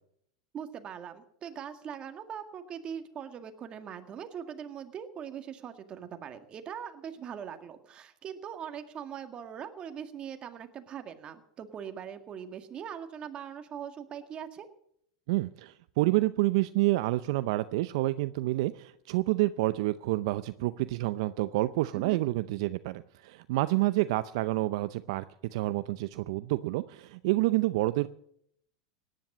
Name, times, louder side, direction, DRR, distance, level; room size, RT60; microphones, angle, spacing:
voice 1, 0.5-14.7 21.9-22.2, right 8 dB, 35° right, 7 dB, 1.9 m, -41 dB
voice 2, 15.3-25.2 25.5-28.1, right 18 dB, 65° right, 13 dB, 0.6 m, -28 dB
17.5 x 10.5 x 6.1 m, 0.70 s
hypercardioid pair, 110°, 3 cm